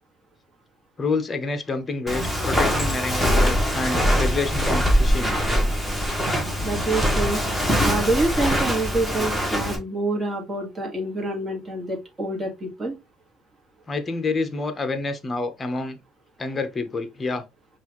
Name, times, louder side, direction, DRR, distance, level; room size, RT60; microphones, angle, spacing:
voice 1, 1.0-5.3 13.9-16.0 16.4-17.4, left 3 dB, 20° left, 0.8 m, -28 dB
Walk footsteps, 2.1-9.8, equal, 5° right, 1.4 m, -22 dB
voice 2, 6.6-7.4 7.8-12.9, right 2 dB, 25° right, 1.5 m, -26 dB
5.4 x 2.5 x 3.0 m
cardioid pair, 125°, 0 cm